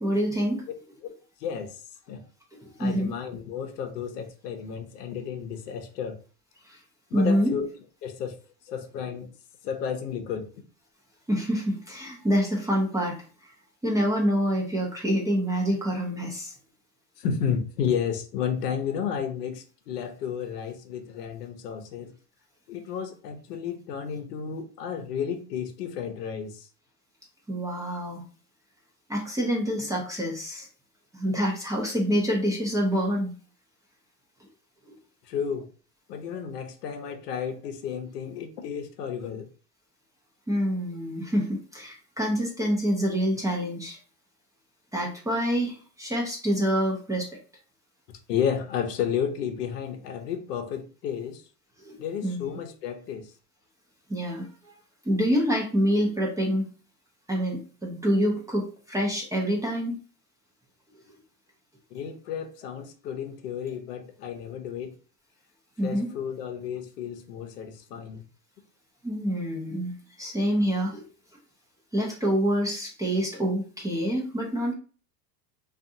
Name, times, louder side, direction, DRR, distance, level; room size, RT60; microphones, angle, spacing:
voice 1, 0.0-0.6 2.6-3.1 6.7-6.8 7.1-7.5 11.3-13.5 13.8-16.5 27.5-28.2 29.1-30.7 31.1-33.3 34.9-35.0 40.5-44.0 44.9-47.3 51.8-52.0 52.2-52.5 54.1-54.7 55.0-56.7 57.3-60.0 65.8-66.1 69.0-71.1 71.9-74.7, equal, 5° right, -2 dB, 0.5 m, -26 dB
voice 2, 1.4-1.8 2.1-2.2 2.8-6.2 7.1-7.7 8.0-8.4 8.7-9.3 9.6-10.5 17.2-22.1 22.7-26.7 35.2-35.7 36.1-39.5 48.3-51.4 52.0-53.3 61.9-65.0 65.8-68.2, left 7 dB, 80° left, 6 dB, 0.7 m, -32 dB
2.6 x 2.4 x 2.5 m, 0.37 s
hypercardioid pair, 100°, 47 cm